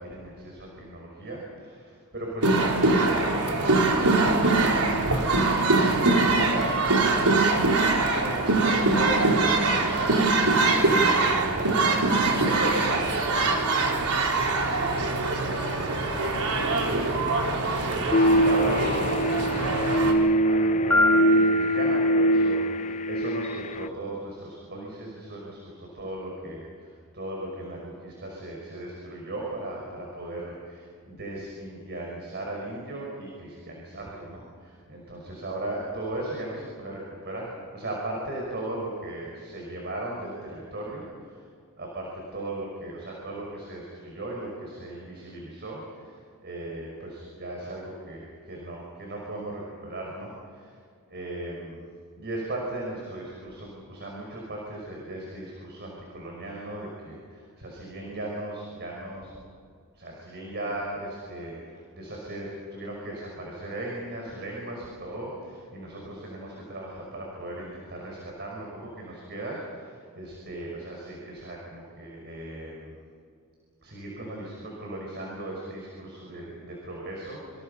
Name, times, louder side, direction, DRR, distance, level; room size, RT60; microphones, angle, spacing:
voice 1, 0.0-13.5 14.4-41.5 41.7-50.8 51.1-51.9 52.2-59.3 59.9-73.0 73.8-77.6, right 1 dB, 50° right, -2 dB, 5.9 m, -37 dB
sound 1, 2.4-20.1, right 3 dB, 85° right, 4.0 m, -23 dB
sound 2, 18.1-23.9, equal, 30° left, 0.5 m, -23 dB
Piano, 20.9-22.8, left 1 dB, 10° left, 5.1 m, -26 dB
28.0 x 27.0 x 5.7 m, 2.2 s
head